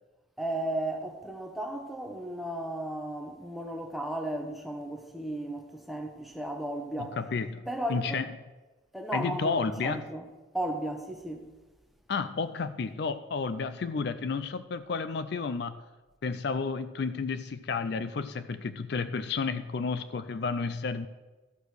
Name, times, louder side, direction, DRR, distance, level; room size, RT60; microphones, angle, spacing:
voice 1, 0.4-7.2 7.7-8.3 8.9-10.2 10.5-11.5, right 1 dB, ahead, 0.9 m, -35 dB
voice 2, 7.0-8.3 9.1-10.0 12.1-15.8 16.2-21.1, left 4 dB, 55° left, 0.4 m, -31 dB
13.0 x 4.9 x 6.5 m
head